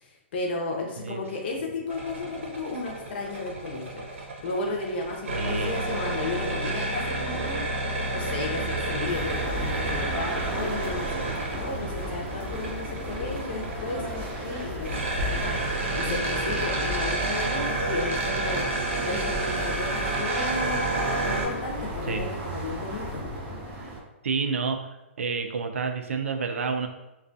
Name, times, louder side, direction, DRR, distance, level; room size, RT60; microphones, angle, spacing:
voice 1, 0.0-20.9 21.2-23.3, left 3 dB, 50° left, 0 dB, 0.6 m, -34 dB
sound 1, 1.9-21.5, right 2 dB, 75° right, 0.7 m, -30 dB
voice 2, 5.3-5.8 22.1-22.3 23.9-24.0 24.2-24.8 25.2-26.9, right 5 dB, 90° right, 6 dB, 0.3 m, -29 dB
sound 2, 9.0-24.0, equal, 25° right, 0.5 m, -35 dB
2.3 x 2.2 x 2.5 m, 0.98 s
hypercardioid pair, 155°, 7 cm